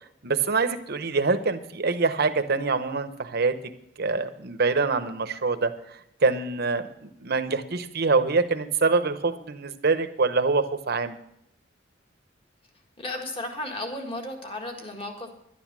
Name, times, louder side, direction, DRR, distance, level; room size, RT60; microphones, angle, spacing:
voice 1, 0.2-3.6 4.0-11.2, right 4 dB, 55° right, 10 dB, 0.9 m, -25 dB
voice 2, 13.0-15.3, left 1 dB, 30° left, 2 dB, 1.8 m, -34 dB
11.0 x 10.5 x 6.1 m, 0.75 s
head